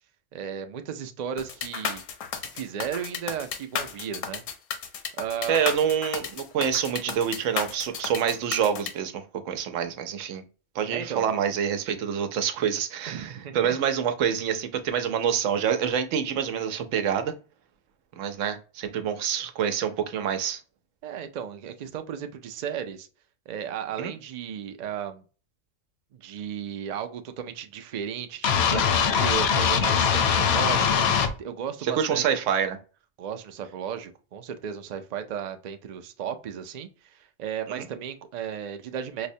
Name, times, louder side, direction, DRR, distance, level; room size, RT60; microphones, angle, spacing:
voice 1, 0.3-2.0 2.4-4.4 5.2-5.6 10.9-11.3 13.1-13.8 21.0-23.1 23.5-25.2 26.1-32.4 33.2-39.3, right 8 dB, 70° right, 0.4 m, -35 dB
sound 1, 1.4-8.9, left 7 dB, 85° left, 1.0 m, -33 dB
voice 2, 5.5-10.4 10.7-17.3 18.2-20.6 24.0-24.1 31.8-32.8 37.7-37.9, right 8 dB, 90° right, 1.0 m, -27 dB
sound 2, 28.4-31.3, left 7 dB, 65° left, 0.7 m, -22 dB
4.8 x 2.1 x 2.6 m
omnidirectional pair, 1.3 m